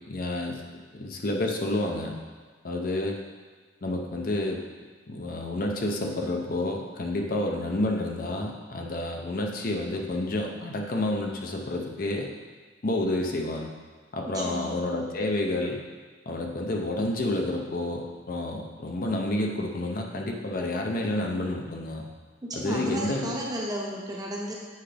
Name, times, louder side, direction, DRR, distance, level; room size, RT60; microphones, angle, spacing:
voice 1, 0.1-0.6 0.9-2.2 2.6-3.2 3.8-4.6 5.1-12.3 12.8-13.7 14.1-15.8 16.3-22.1 22.5-23.4, left 1 dB, 45° left, 1 dB, 0.6 m, -29 dB
voice 2, 14.3-14.7 22.4-24.5, right 1 dB, 20° right, -3 dB, 0.9 m, -33 dB
8.0 x 4.9 x 3.3 m, 1.5 s
head